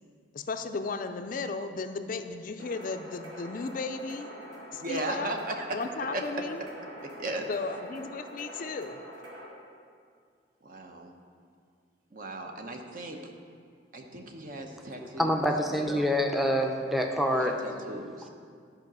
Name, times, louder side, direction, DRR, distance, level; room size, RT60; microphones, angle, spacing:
voice 1, 0.3-4.3 4.7-5.3 5.7-6.6 7.5-9.0, left 4 dB, 45° left, 8 dB, 0.4 m, -35 dB
sound 1, 2.6-9.5, equal, 75° right, 2.4 m, -45 dB
voice 2, 4.8-5.8 6.1-6.2 7.2-7.5 10.6-11.1 12.1-13.2 13.9-16.1 17.3-18.3, right 1 dB, 50° right, 3 dB, 0.9 m, -37 dB
voice 3, 15.2-17.5, equal, ahead, 2 dB, 0.6 m, -26 dB
12.0 x 5.0 x 6.1 m, 2.2 s
head